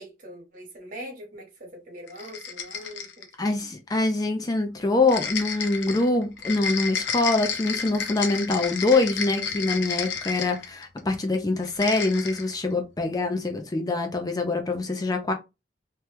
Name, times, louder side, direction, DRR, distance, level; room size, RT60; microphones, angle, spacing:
voice 1, 0.0-3.5, equal, 50° right, 1.2 m, -42 dB
sound 1, 2.1-3.3 5.1-11.0 11.6-12.5, left 6 dB, 85° left, 0.6 m, -31 dB
voice 2, 3.4-15.3, left 2 dB, 20° left, 0.4 m, -24 dB
2.9 x 2.2 x 3.3 m
head